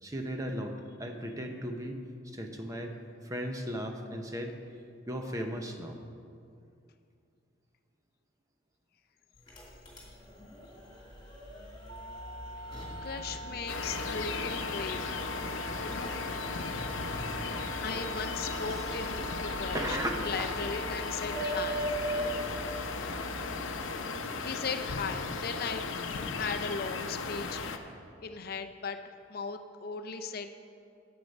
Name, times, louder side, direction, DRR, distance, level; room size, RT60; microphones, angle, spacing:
voice 1, 0.0-3.0 3.2-4.6 5.1-6.0 17.7-17.8 18.3-18.8 19.7-20.5 27.7-27.9, equal, 15° right, 3 dB, 0.8 m, -37 dB
sound 1, 9.3-23.8, right 1 dB, 25° left, 2.5 m, -41 dB
sound 2, 11.9-21.9, equal, 65° right, 0.4 m, -44 dB
voice 2, 13.0-15.0 15.8-16.3 17.8-21.9 24.4-25.8 26.3-27.6 28.2-29.0 29.3-30.5, left 5 dB, 50° left, 7 dB, 0.5 m, -37 dB
sound 3, 13.7-27.8, left 4 dB, 85° left, 0.7 m, -36 dB
11.5 x 7.9 x 5.4 m, 2.4 s
head